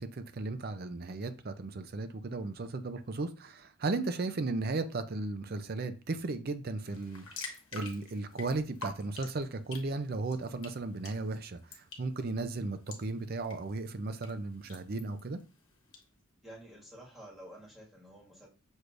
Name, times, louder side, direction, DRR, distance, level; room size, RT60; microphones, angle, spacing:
voice 1, 0.0-15.4, right 3 dB, 45° right, 10 dB, 0.5 m, -35 dB
sound 1, 6.9-16.0, left 3 dB, 65° left, 1.2 m, -49 dB
voice 2, 16.4-18.5, right 1 dB, ahead, -7 dB, 1.8 m, -50 dB
6.2 x 3.3 x 2.5 m, 0.33 s
head